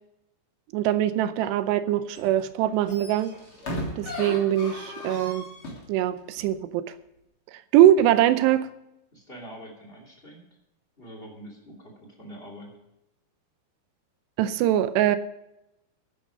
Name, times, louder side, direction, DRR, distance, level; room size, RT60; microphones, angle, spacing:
voice 1, 0.7-3.3 4.0-5.5 5.9-6.8 7.7-8.7 14.4-15.2, right 12 dB, 80° right, 12 dB, 2.8 m, -22 dB
sound 1, 2.1-2.4 2.7-5.9 6.4-6.5, left 1 dB, 35° left, 3.5 m, -36 dB
voice 2, 9.1-10.4 11.0-12.8, equal, 15° left, 1 dB, 2.4 m, -44 dB
12.5 x 10.5 x 5.1 m, 0.87 s
omnidirectional pair, 4.9 m